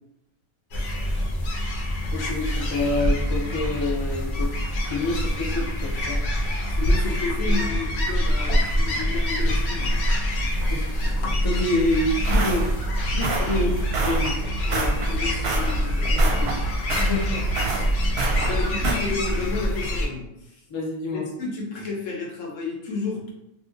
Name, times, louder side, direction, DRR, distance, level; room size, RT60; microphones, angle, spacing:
sound 1, 0.7-20.1, equal, 65° left, 0.8 m, -25 dB
voice 1, 2.1-6.2 10.7-12.7 13.1-14.4 16.9-17.9 20.7-21.3, left 2 dB, 45° left, -1 dB, 0.3 m, -28 dB
voice 2, 6.7-10.0 13.4-13.5 14.7-16.5 18.4-20.6 21.1-23.3, left 4 dB, 85° left, -1 dB, 1.1 m, -32 dB
sound 2, 11.8-18.9, right 2 dB, 65° right, 0.7 m, -26 dB
2.8 x 2.7 x 2.5 m, 0.85 s
omnidirectional pair, 1.3 m